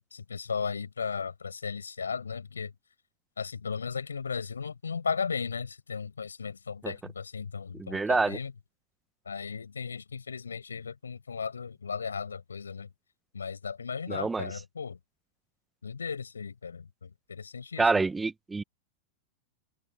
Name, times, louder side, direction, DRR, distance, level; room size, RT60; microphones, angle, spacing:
voice 1, 0.1-2.7 3.4-8.5 9.3-12.9 13.3-15.0 15.8-18.0, left 5 dB, 85° left, 5.2 m, -36 dB
voice 2, 7.8-8.4 14.1-14.4 17.8-18.6, right 3 dB, 10° right, 1.2 m, -26 dB
open air
hypercardioid pair, 95°, 0 cm